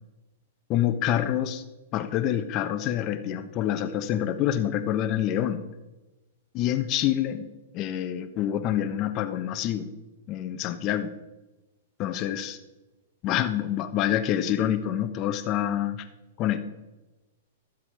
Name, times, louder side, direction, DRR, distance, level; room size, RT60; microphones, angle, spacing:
voice 1, 0.7-1.6 1.9-5.6 6.5-7.5 7.7-9.9 10.3-11.1 12.0-12.6 13.2-16.0 16.4-16.6, left 11 dB, 40° left, 9 dB, 1.0 m, -27 dB
12.5 x 7.4 x 4.8 m, 1.1 s
hypercardioid pair, 120°, 0 cm